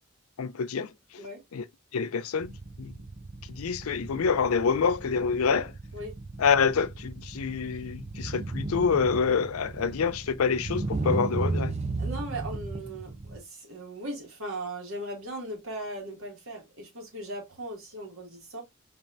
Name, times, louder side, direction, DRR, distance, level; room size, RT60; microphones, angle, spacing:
voice 1, 0.4-0.9 1.5-1.6 1.9-2.5 2.8-2.9 3.5-5.7 6.4-11.7, left 5 dB, 85° left, 0.5 m, -26 dB
sound 1, 2.4-13.4, right 3 dB, 30° right, 0.5 m, -35 dB
voice 2, 12.0-18.6, right 1 dB, 70° right, 1.9 m, -38 dB
4.2 x 3.4 x 2.5 m
head